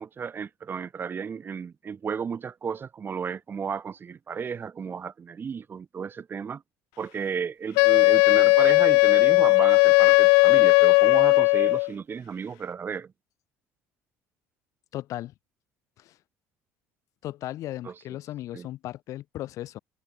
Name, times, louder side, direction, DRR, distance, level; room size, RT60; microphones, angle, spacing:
voice 1, 0.0-6.6 7.0-13.1 17.8-17.9 18.5-18.7, right 6 dB, 35° right, 5.2 m, -33 dB
Wind instrument woodwind instrument, 7.8-11.9, left 35 dB, 85° left, 0.5 m, -17 dB
voice 2, 14.9-15.3 16.0-16.2 17.2-19.8, left 14 dB, 65° left, 5.4 m, -36 dB
supercardioid pair, 85°, 6 cm